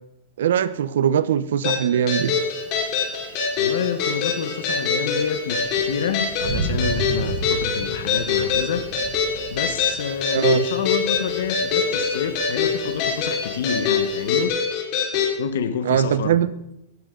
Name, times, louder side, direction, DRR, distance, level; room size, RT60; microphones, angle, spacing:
voice 1, 0.4-2.3 10.3-10.7 15.8-16.5, right 9 dB, 90° right, 0.9 m, -21 dB
sound 1, 1.6-15.3, left 6 dB, 45° left, 4.6 m, -24 dB
Thunder, 2.1-14.5, right 4 dB, 60° right, 2.2 m, -35 dB
voice 2, 3.6-8.9 9.5-14.6 15.4-16.4, left 7 dB, 90° left, 1.1 m, -28 dB
17.5 x 13.5 x 3.9 m
supercardioid pair, 155°, 0 cm